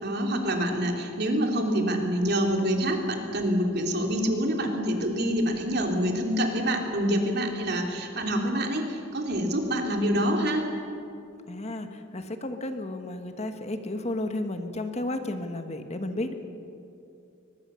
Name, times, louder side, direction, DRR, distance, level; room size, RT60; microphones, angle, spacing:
voice 1, 0.0-10.7, equal, 55° right, 2 dB, 3.0 m, -26 dB
voice 2, 11.5-16.3, left 1 dB, 35° left, 7 dB, 1.4 m, -33 dB
22.5 x 20.5 x 6.9 m, 2.7 s
head